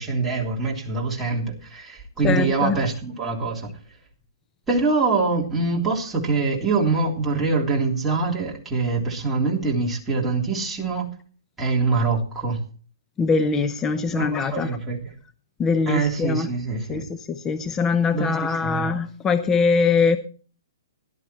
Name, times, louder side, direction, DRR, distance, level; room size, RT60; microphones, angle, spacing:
voice 1, 0.0-3.7 4.7-11.1 11.6-12.6 14.1-15.0 15.9-17.0 18.1-18.9, right 4 dB, 10° right, 3.3 m, -24 dB
voice 2, 2.2-2.8 13.2-14.8 15.6-16.5 16.9-20.2, left 5 dB, 15° left, 0.7 m, -22 dB
17.0 x 11.5 x 3.0 m
hypercardioid pair, 145°, 2 cm